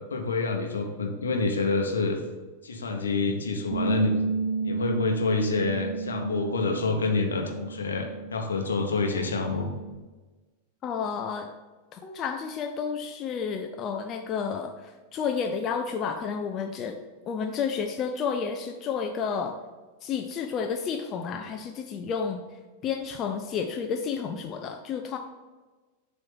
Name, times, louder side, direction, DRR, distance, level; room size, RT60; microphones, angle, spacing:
voice 1, 0.1-2.2 2.6-4.1 4.6-9.7, left 4 dB, 70° left, 3 dB, 0.9 m, -27 dB
Bass guitar, 3.7-10.0, right 4 dB, 45° right, 1.3 m, -32 dB
voice 2, 10.8-11.5 11.9-17.0 17.3-19.6 20.0-22.4 22.8-25.2, left 6 dB, 30° left, 4 dB, 0.5 m, -31 dB
7.4 x 3.1 x 5.5 m, 1.3 s
figure-of-eight pair, 90°, 0 cm